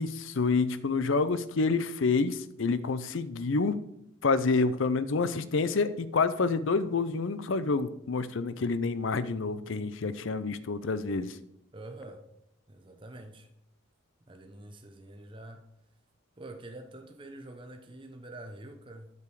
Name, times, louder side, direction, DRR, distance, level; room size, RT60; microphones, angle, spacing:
voice 1, 0.0-3.8 4.2-11.4, left 4 dB, 70° left, 14 dB, 0.6 m, -28 dB
voice 2, 11.7-12.3 12.7-13.5 14.3-15.6 16.4-19.1, right 1 dB, 25° right, 5 dB, 0.7 m, -46 dB
8.4 x 6.9 x 4.8 m, 0.81 s
head